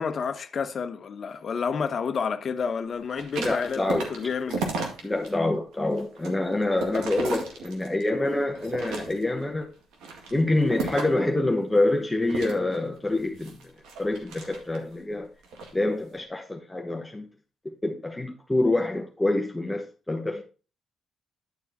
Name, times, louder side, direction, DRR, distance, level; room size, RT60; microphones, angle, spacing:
voice 1, 0.0-4.7 6.9-7.0, left 6 dB, 50° left, 0.9 m, -30 dB
sound 1, 3.1-5.3 5.7-8.1 8.5-9.4 9.9-11.3 12.3-14.9 15.4-15.7, right 4 dB, 90° right, 2.1 m, -34 dB
voice 2, 3.4-4.1 5.0-9.7 10.3-13.6 14.0-15.3 15.7-17.3 17.8-20.4, left 2 dB, 10° left, 1.0 m, -26 dB
10.5 x 4.7 x 4.1 m
cardioid pair, 90°, 0 cm